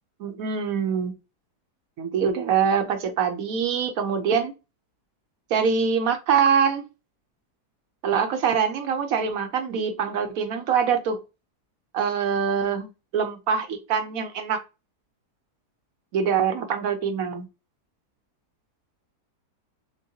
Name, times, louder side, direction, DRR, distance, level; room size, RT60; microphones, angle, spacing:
voice 1, 0.2-1.1 2.0-4.5 5.5-6.8 8.0-11.2 11.9-12.9 13.1-14.6 16.1-17.5, right 6 dB, 65° right, 1.0 m, -24 dB
6.2 x 2.2 x 2.7 m
omnidirectional pair, 1.8 m